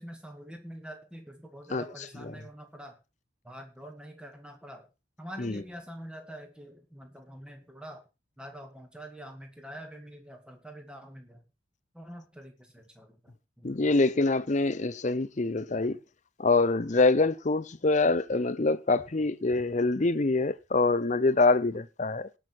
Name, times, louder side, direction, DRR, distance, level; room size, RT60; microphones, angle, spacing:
voice 1, 0.0-3.0 3.4-4.9 5.2-8.0 8.4-11.4 11.9-13.9, equal, 5° right, 2.2 m, -45 dB
voice 2, 13.6-16.0 16.4-22.3, left 3 dB, 35° left, 0.7 m, -25 dB
18.5 x 6.3 x 4.5 m
head